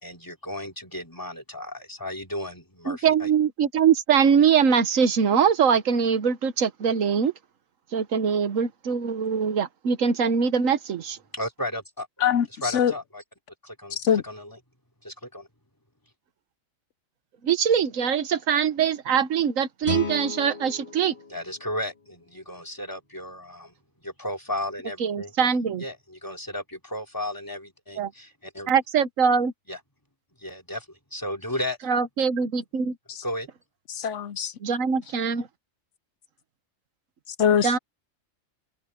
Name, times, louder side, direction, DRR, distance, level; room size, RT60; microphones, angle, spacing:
voice 1, 0.0-3.3 11.3-12.1 12.6-13.2 13.6-14.0 14.2-14.5 15.0-15.5 21.3-23.7 24.0-25.3 25.8-28.7 29.7-29.8 30.4-30.8 31.1-31.8 33.2-33.5, left 1 dB, 15° left, 2.9 m, -34 dB
voice 2, 2.9-7.3 7.9-11.2 17.4-21.1 25.0-25.8 28.0-28.1 28.7-29.5 31.9-32.9 34.6-35.5 37.6-37.8, right 7 dB, 85° right, 1.5 m, -22 dB
voice 3, 12.2-12.9 13.9-14.2 33.1-33.2 33.9-34.5 37.4-37.7, left 8 dB, 70° left, 1.0 m, -23 dB
Guitar, 19.8-22.6, left 4 dB, 40° left, 2.7 m, -36 dB
omnidirectional pair, 1.3 m